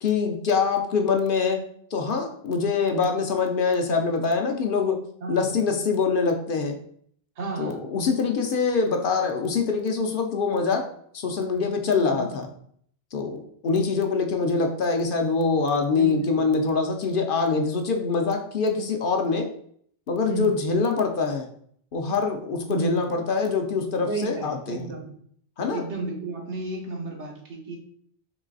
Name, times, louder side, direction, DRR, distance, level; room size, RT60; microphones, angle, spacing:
voice 1, 0.0-1.6 1.9-5.0 5.3-6.8 7.6-10.9 11.1-12.5 13.1-19.5 20.1-21.5 21.9-24.9 25.6-25.9, left 4 dB, 60° left, 4 dB, 0.7 m, -24 dB
voice 2, 5.2-5.5 7.4-7.8 12.0-12.5 15.9-16.5 20.3-20.6 22.6-23.1 24.1-25.1 25.7-27.8, right 3 dB, 80° right, 0 dB, 1.4 m, -33 dB
3.9 x 3.2 x 3.8 m, 0.62 s
omnidirectional pair, 1.2 m